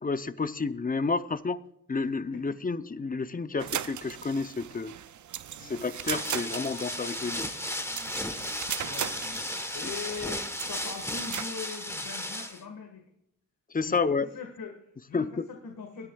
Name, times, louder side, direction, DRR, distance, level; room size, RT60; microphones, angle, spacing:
voice 1, 0.0-1.6 1.9-4.9 5.6-7.5 13.7-14.3 15.1-15.5, left 4 dB, 25° left, 13 dB, 0.6 m, -30 dB
sound 1, 3.6-11.4, right 10 dB, 60° right, 0.5 m, -38 dB
sound 2, 5.9-12.6, left 1 dB, 10° left, 1.1 m, -35 dB
voice 2, 7.9-8.4 8.8-9.4 9.7-13.0 13.8-16.1, left 5 dB, 90° left, 3 dB, 1.7 m, -42 dB
24.0 x 10.0 x 2.3 m, 0.81 s
wide cardioid pair, 105°, 34 cm